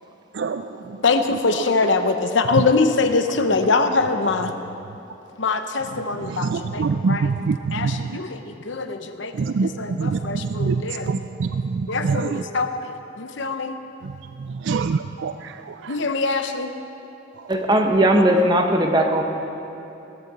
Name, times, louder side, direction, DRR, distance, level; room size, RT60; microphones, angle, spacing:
voice 1, 1.0-4.5 5.4-7.3 7.7-11.1 11.9-13.7 15.9-16.7, left 4 dB, 65° left, 7 dB, 0.9 m, -23 dB
voice 2, 6.5-7.5 7.8-7.9 9.4-9.7 10.0-10.2 10.6-10.8 11.1-11.5 12.1-12.2 14.7-15.3, right 4 dB, 65° right, 10 dB, 0.4 m, -23 dB
voice 3, 17.5-19.2, right 1 dB, 20° right, 3 dB, 1.0 m, -18 dB
17.5 x 14.0 x 4.2 m, 2.9 s
head